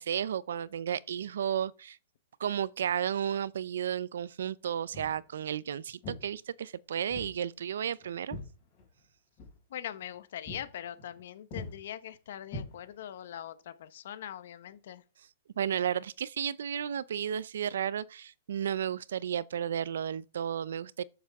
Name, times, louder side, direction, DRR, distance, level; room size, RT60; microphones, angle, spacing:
voice 1, 0.0-2.0 2.4-8.4 15.6-21.0, right 9 dB, 65° right, 0.5 m, -33 dB
Walk footsteps, 4.9-5.2 6.0-6.2 7.1-7.3 7.7-9.1 9.4-9.6 10.0-10.1 10.5-10.7 11.0-11.2 11.5-11.7 12.5-13.2, left 2 dB, 25° left, 5.2 m, -42 dB
voice 2, 9.7-15.0, left 10 dB, 50° left, 1.1 m, -42 dB
13.5 x 7.2 x 3.6 m
hypercardioid pair, 175°, 0 cm